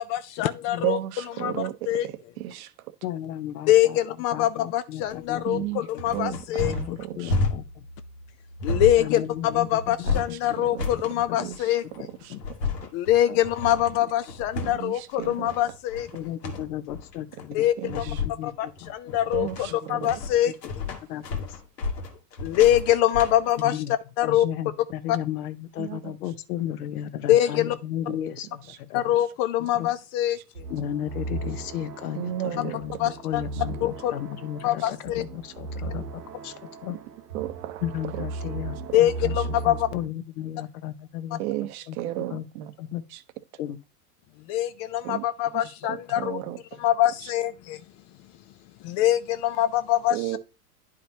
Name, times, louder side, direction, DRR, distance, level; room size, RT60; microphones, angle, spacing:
voice 1, 0.0-2.1 3.7-6.7 8.6-12.1 12.9-16.1 17.5-18.1 18.4-20.6 22.4-23.8 24.2-24.5 25.1-25.2 27.3-27.8 28.9-30.6 33.0-33.4 33.8-34.1 34.6-35.2 38.9-39.9 44.5-46.4 46.8-47.8 48.8-50.4, left 12 dB, 35° left, 0.4 m, -24 dB
voice 2, 0.8-2.1 2.4-2.7 5.5-5.8 6.1-7.3 10.1-10.2 10.7-10.9 11.4-11.6 12.3-12.4 14.8-14.9 15.2-15.5 17.8-18.0 19.3-19.6 19.9-20.1 25.8-26.1 32.2-32.8 37.3-37.8 38.2-38.3 41.4-42.7 43.1-43.2 45.0-45.2 45.9-46.6 50.1-50.4, right 14 dB, 65° right, 0.9 m, -32 dB
voice 3, 3.0-4.0 4.3-6.2 6.5-7.6 9.0-10.2 10.5-10.6 11.1-11.4 12.0-12.4 12.8-12.9 13.3-13.4 16.1-18.9 19.7-20.1 21.1-21.4 23.6-23.9 24.2-29.0 29.7-29.9 30.7-36.5 36.8-37.0 37.8-39.3 39.6-41.4 41.9-42.0 42.3-42.5 42.8-43.0 43.6-43.8, left 11 dB, 70° left, 0.9 m, -34 dB
sound 1, 5.0-23.6, left 3 dB, 85° left, 1.5 m, -32 dB
sound 2, 30.5-40.1, right 3 dB, 90° right, 1.2 m, -36 dB
10.0 x 4.9 x 2.8 m
hypercardioid pair, 95°, 47 cm